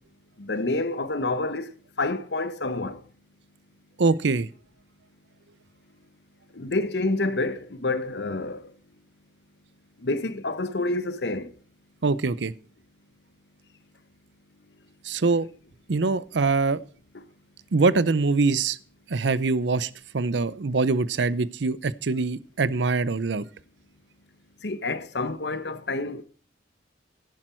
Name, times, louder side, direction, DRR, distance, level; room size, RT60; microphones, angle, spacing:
voice 1, 0.4-1.7 2.0-3.0 6.5-8.7 10.0-11.5 17.1-17.2 24.6-26.2, left 2 dB, 70° left, 0.9 m, -28 dB
voice 2, 4.0-4.5 12.0-12.5 15.0-15.5 15.9-16.8 17.7-18.8 19.1-23.4, right 3 dB, 80° right, 0.6 m, -23 dB
11.0 x 10.5 x 4.4 m
head